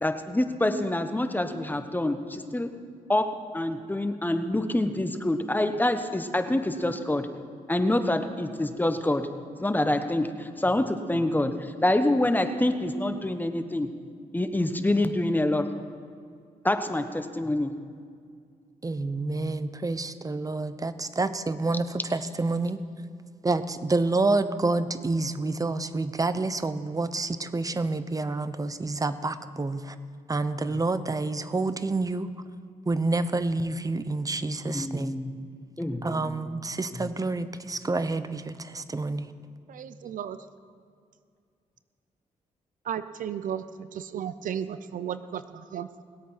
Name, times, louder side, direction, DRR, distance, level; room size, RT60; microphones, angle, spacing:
voice 1, 0.0-2.7 3.1-3.3 3.5-7.3 7.7-9.3 9.6-13.9 14.3-15.7 16.6-17.7 30.6-30.8 34.6-35.3 35.8-36.6 36.9-37.1, left 1 dB, 15° left, 8 dB, 1.1 m, -26 dB
voice 2, 18.8-22.8 23.4-29.9 30.3-32.3 32.9-35.1 36.0-39.3, right 3 dB, 25° right, 12 dB, 0.8 m, -28 dB
voice 3, 39.7-40.4 42.8-46.0, right 9 dB, 70° right, 13 dB, 0.6 m, -34 dB
20.0 x 8.4 x 5.7 m, 2.2 s
cardioid pair, 75°, 14 cm